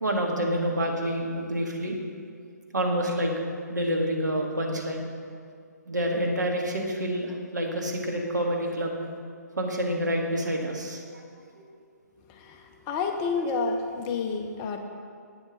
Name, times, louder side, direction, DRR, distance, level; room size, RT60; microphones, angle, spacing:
voice 1, 0.0-2.0 2.7-3.3 3.7-5.0 5.9-8.9 9.6-11.0, equal, 75° right, 0 dB, 1.8 m, -27 dB
voice 2, 12.3-14.8, left 4 dB, 20° left, 4 dB, 0.6 m, -30 dB
11.5 x 8.9 x 4.0 m, 2.2 s
figure-of-eight pair, 135°, 10 cm